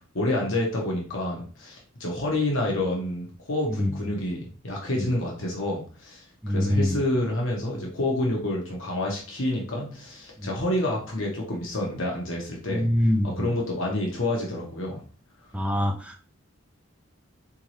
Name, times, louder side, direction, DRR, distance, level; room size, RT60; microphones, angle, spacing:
voice 1, 0.0-15.0, left 1 dB, 70° left, -2 dB, 1.2 m, -28 dB
voice 2, 6.4-7.0 10.4-10.5 12.7-13.5 15.5-16.2, equal, 5° right, 3 dB, 0.5 m, -24 dB
4.1 x 3.6 x 3.1 m, 0.39 s
head